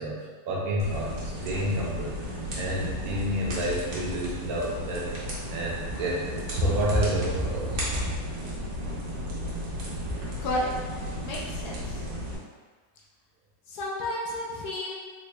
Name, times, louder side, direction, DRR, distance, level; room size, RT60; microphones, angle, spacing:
voice 1, 0.0-5.1 5.5-7.9, equal, 70° right, -3 dB, 1.1 m, -29 dB
sound 1, 0.8-12.4, equal, 85° right, 1.4 m, -34 dB
voice 2, 10.4-10.7 11.2-11.8 13.7-15.0, left 1 dB, 70° left, -3 dB, 1.1 m, -31 dB
3.8 x 2.1 x 3.2 m, 1.4 s
omnidirectional pair, 1.8 m